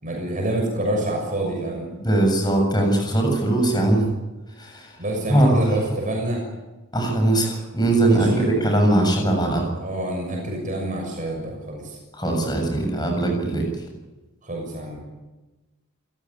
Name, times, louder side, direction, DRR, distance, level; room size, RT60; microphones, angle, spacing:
voice 1, 0.0-1.9 5.0-6.4 8.0-8.6 9.7-12.0 14.4-15.0, right 1 dB, 35° right, 1 dB, 6.7 m, -27 dB
voice 2, 2.0-4.1 4.6-4.9 5.3-5.7 6.9-9.7 12.1-13.7, right 1 dB, 20° left, 3 dB, 7.4 m, -20 dB
29.0 x 16.5 x 9.9 m, 1.1 s
head